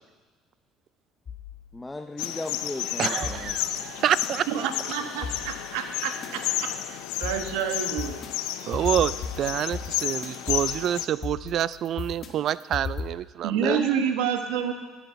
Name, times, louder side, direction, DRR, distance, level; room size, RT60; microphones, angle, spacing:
sound 1, 1.3-2.3 3.2-4.3 5.2-6.3 7.2-13.1, left 5 dB, 45° left, 1.7 m, -37 dB
voice 1, 1.7-3.7 13.6-14.0, left 2 dB, 15° left, 6 dB, 0.6 m, -35 dB
sound 2, 2.2-11.1, left 12 dB, 80° left, 0.6 m, -32 dB
voice 2, 3.0-4.7 8.7-13.8, right 10 dB, 55° right, 18 dB, 0.3 m, -27 dB
voice 3, 4.5-8.2 13.4-14.7, right 8 dB, 85° right, 6 dB, 1.2 m, -29 dB
13.5 x 9.2 x 5.8 m, 1.3 s
supercardioid pair, 80°, 0 cm